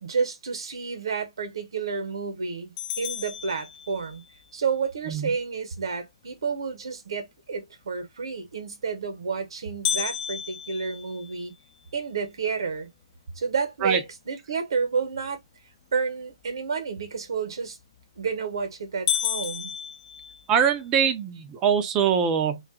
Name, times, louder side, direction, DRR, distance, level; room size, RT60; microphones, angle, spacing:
voice 1, 0.0-4.2 4.5-11.5 11.9-12.9 13.4-15.4 15.9-17.8 18.2-19.7, right 5 dB, 55° right, 1.0 m, -30 dB
sound 1, 2.8-4.3 9.8-12.0 12.5-12.6 13.1-13.2 13.9-14.2 17.8-18.2 18.6-18.7 19.1-20.8, left 10 dB, 25° left, 0.5 m, -32 dB
voice 2, 20.5-22.6, right 7 dB, 20° right, 0.6 m, -23 dB
2.6 x 2.4 x 3.6 m
figure-of-eight pair, 130°, 3 cm